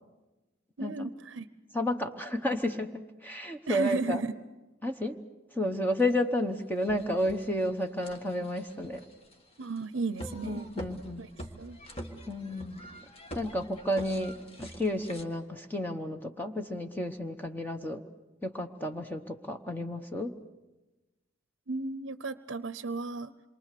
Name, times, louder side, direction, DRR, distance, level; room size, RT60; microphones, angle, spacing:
voice 1, 0.8-1.5 3.7-4.4 9.6-10.7 11.2-11.3 11.6-11.8 21.7-23.3, right 3 dB, 65° right, 13 dB, 0.7 m, -34 dB
voice 2, 1.7-4.2 4.8-5.2 5.5-9.0 10.5-11.2 12.3-12.8 13.3-18.0 18.4-20.3, left 1 dB, 10° left, 5 dB, 1.0 m, -31 dB
sound 1, 6.0-6.1 6.6-15.2, equal, 30° left, 1.8 m, -45 dB
27.5 x 23.5 x 6.7 m, 1.1 s
head